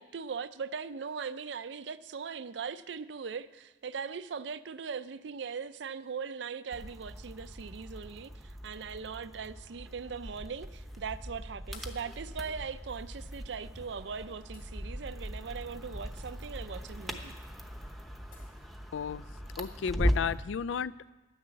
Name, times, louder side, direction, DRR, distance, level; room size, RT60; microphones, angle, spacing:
voice 1, 0.0-17.4, right 6 dB, 70° right, 0.5 m, -40 dB
sound 1, 6.7-20.4, equal, ahead, 0.8 m, -39 dB
sound 2, 10.9-11.1 11.7-12.2 13.6-13.8 14.5-15.1 17.1-17.2 18.3-18.7, left 4 dB, 50° left, 3.4 m, -57 dB
voice 2, 18.9-19.2 19.6-21.1, left 7 dB, 80° left, 0.3 m, -33 dB
10.5 x 9.8 x 7.7 m
head